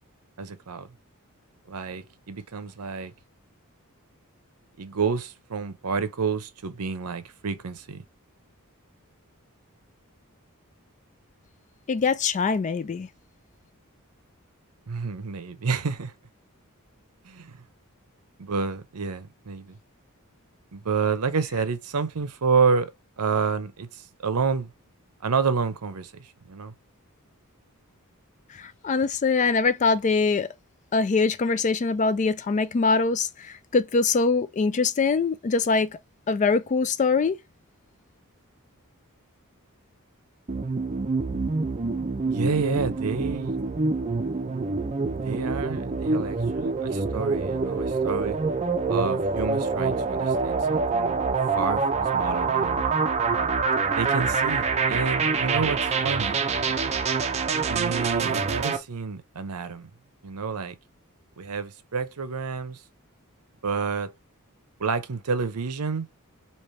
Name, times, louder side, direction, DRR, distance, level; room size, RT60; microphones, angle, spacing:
voice 1, 0.4-0.9 1.7-3.1 4.8-8.0 14.9-16.1 17.2-17.6 18.4-19.8 20.7-22.9 23.2-24.7 25.2-26.7 42.3-43.6 45.1-48.4 48.9-51.2 51.5-52.8 53.9-56.4 57.6-59.9 60.2-60.8 61.4-62.8 63.6-64.1 64.8-66.1, right 5 dB, 90° right, 0.7 m, -29 dB
voice 2, 11.9-13.1 28.5-30.5 30.9-36.0 36.3-37.4, left 4 dB, 35° left, 0.3 m, -23 dB
sound 1, 40.5-58.8, right 4 dB, 30° right, 0.5 m, -26 dB
3.3 x 2.9 x 4.3 m
head